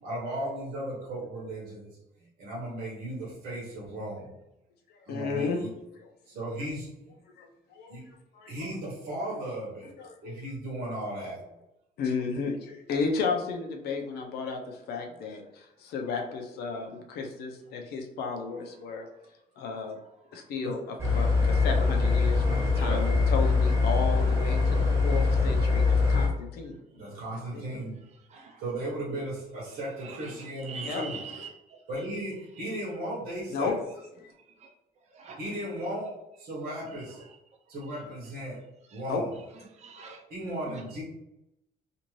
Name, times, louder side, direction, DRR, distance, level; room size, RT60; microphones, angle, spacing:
voice 1, 0.0-1.9 2.4-4.3 5.1-5.7 6.2-6.9 7.9-8.0 8.5-9.9 10.2-11.4 20.6-20.7 22.7-23.1 26.9-28.0 28.6-31.2 31.9-33.8 35.4-36.1 36.4-37.2 37.7-38.6 38.9-39.3 40.3-41.0, right 1 dB, 70° right, -5 dB, 1.0 m, -36 dB
voice 2, 5.1-5.6 6.0-6.1 7.4-8.0 8.3-8.7 10.0-10.4 12.0-19.1 19.6-20.0 20.3-26.7 27.5-27.6 30.8-31.0 33.5-33.7 34.2-34.3 39.1-39.2, left 4 dB, 75° left, 3 dB, 0.6 m, -33 dB
sound 1, 21.0-26.3, left 4 dB, 15° right, 1.1 m, -23 dB
voice 3, 28.3-28.6 30.0-31.8 34.6-34.7 35.1-35.4 37.2-37.3 38.9-39.0 39.7-40.2 40.7-40.8, right 6 dB, 45° right, 2 dB, 0.5 m, -44 dB
2.6 x 2.5 x 3.0 m, 0.86 s
cardioid pair, 120°, 16 cm